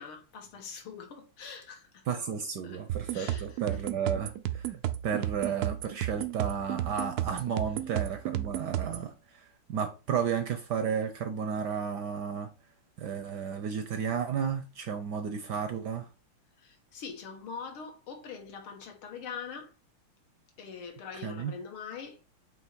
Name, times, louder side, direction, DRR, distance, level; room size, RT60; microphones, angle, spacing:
voice 1, 0.0-2.0 2.6-2.9 3.1-3.8 16.6-19.7 20.6-22.2, left 6 dB, 75° left, 2.2 m, -43 dB
voice 2, 2.1-4.8 5.0-12.5 13.0-16.1 21.2-21.5, right 7 dB, 65° right, 1.1 m, -33 dB
sound 1, 2.9-9.1, right 12 dB, 85° right, 0.8 m, -33 dB
7.9 x 3.1 x 4.5 m
omnidirectional pair, 2.4 m